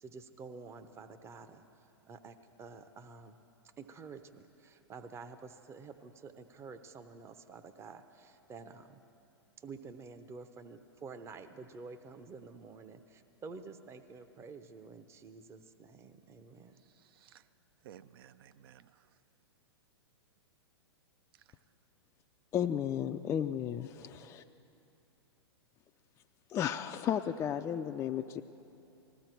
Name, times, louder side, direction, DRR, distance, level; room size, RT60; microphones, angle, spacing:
voice 1, 0.0-3.4 3.8-9.0 9.6-16.8, right 4 dB, 20° right, 9 dB, 0.7 m, -50 dB
voice 2, 16.8-17.5 17.8-19.2 21.3-21.5, right 10 dB, 60° right, 14 dB, 0.5 m, -57 dB
voice 3, 22.5-24.4 26.5-28.4, left 9 dB, 20° left, 5 dB, 0.3 m, -34 dB
19.5 x 15.0 x 4.6 m, 2.8 s
hypercardioid pair, 115°, 14 cm